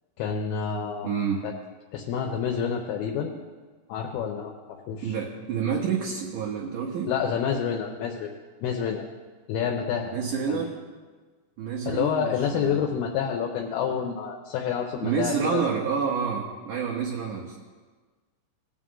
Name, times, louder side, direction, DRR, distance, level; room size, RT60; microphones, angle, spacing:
voice 1, 0.2-1.1 1.4-1.5 1.9-3.3 3.9-4.5 4.9-5.2 7.1-8.3 8.6-9.1 9.5-10.2 10.5-10.6 11.9-15.6, left 7 dB, 80° left, 1 dB, 2.5 m, -28 dB
voice 2, 1.0-1.4 5.0-7.1 10.1-10.8 11.6-12.8 15.0-17.6, right 6 dB, 75° right, -2 dB, 2.0 m, -28 dB
17.5 x 6.1 x 3.7 m, 1.4 s
omnidirectional pair, 4.8 m